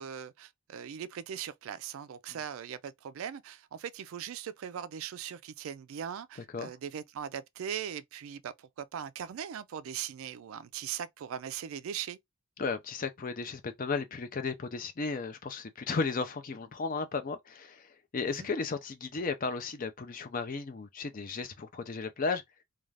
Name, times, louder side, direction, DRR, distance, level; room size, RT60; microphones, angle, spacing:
voice 1, 0.0-12.2 18.2-18.5, right 8 dB, 65° right, 0.3 m, -40 dB
voice 2, 12.6-22.4, left 4 dB, 35° left, 0.4 m, -34 dB
2.5 x 2.3 x 3.2 m
head